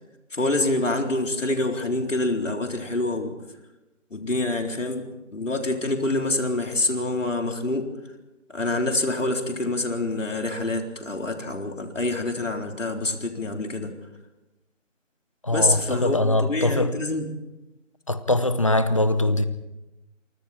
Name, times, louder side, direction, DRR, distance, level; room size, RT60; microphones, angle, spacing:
voice 1, 0.3-3.3 4.1-5.0 5.3-7.9 8.5-13.9 15.5-17.3, left 2 dB, 75° left, 4.2 m, -26 dB
voice 2, 15.4-16.9 18.1-19.5, left 1 dB, 25° left, 0.8 m, -22 dB
28.0 x 24.0 x 4.4 m
figure-of-eight pair, 165°, 38 cm